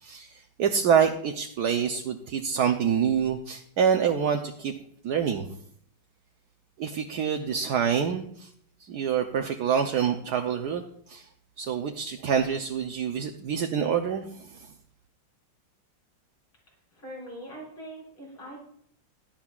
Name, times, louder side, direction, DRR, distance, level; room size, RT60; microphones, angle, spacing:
voice 1, 0.0-4.7 5.0-5.5 6.8-8.5 8.8-11.3 11.6-14.7, right 7 dB, 60° right, 5 dB, 1.2 m, -26 dB
voice 2, 16.9-18.6, right 1 dB, 85° left, -4 dB, 6.6 m, -42 dB
17.5 x 13.0 x 2.4 m, 0.66 s
omnidirectional pair, 2.1 m